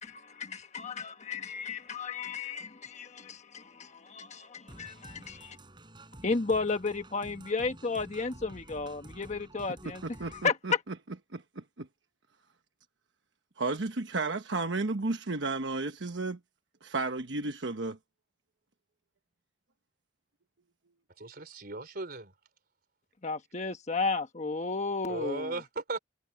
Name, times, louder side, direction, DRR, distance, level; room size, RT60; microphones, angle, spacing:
voice 1, 0.0-5.6 6.2-10.0 10.3-10.8 23.2-25.6, left 4 dB, 40° left, 1.3 m, -33 dB
sound 1, 4.7-10.5, right 1 dB, 25° right, 4.4 m, -50 dB
voice 2, 10.0-10.7 11.3-11.9 13.6-16.4 16.8-18.0, right 3 dB, 85° right, 1.1 m, -33 dB
voice 3, 21.2-22.3 25.1-26.0, right 2 dB, 55° right, 4.0 m, -37 dB
head